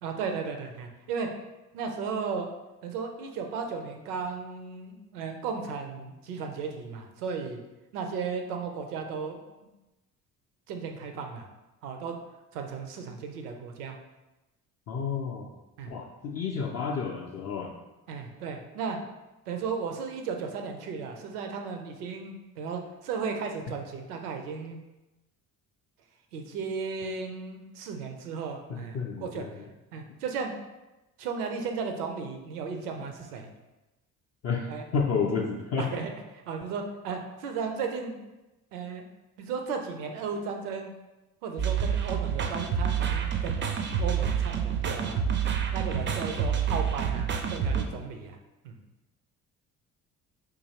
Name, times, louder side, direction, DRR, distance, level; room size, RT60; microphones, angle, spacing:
voice 1, 0.0-1.3 1.7-2.5 2.8-7.6 7.9-9.7 10.7-11.5 11.8-12.1 12.5-14.0 15.8-15.9 18.1-19.0 19.5-24.8 26.3-29.4 29.9-30.5 31.2-33.5 34.7-34.8 35.8-38.2 38.7-39.0 39.4-40.9 41.4-43.7 44.0-45.2 45.7-48.4 48.6-48.8, right 5 dB, 80° right, 4 dB, 0.6 m, -35 dB
voice 2, 14.9-15.5 15.9-17.7 28.7-29.5 34.4-35.9, left 5 dB, 35° left, -1 dB, 0.4 m, -31 dB
sound 1, 41.6-47.8, right 7 dB, 25° right, 0.4 m, -28 dB
3.9 x 2.7 x 2.8 m, 1.0 s
figure-of-eight pair, 50°, 45 cm